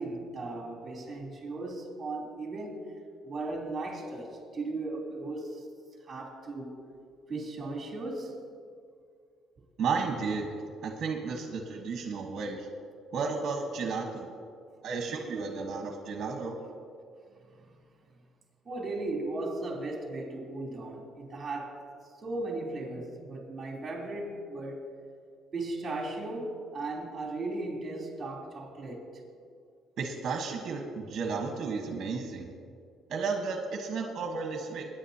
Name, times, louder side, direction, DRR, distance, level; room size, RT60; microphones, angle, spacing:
voice 1, 0.0-2.9 3.2-5.6 6.0-6.7 7.3-8.4 17.3-17.8 18.6-21.8 22.2-24.9 25.5-29.1, right 2 dB, 30° right, -1 dB, 3.3 m, -37 dB
voice 2, 9.8-10.5 10.8-12.7 13.1-14.3 14.8-16.6 30.0-32.5 33.1-34.9, right 4 dB, 50° right, 2 dB, 1.4 m, -33 dB
22.0 x 10.0 x 2.9 m, 2.3 s
cardioid pair, 120°, 0 cm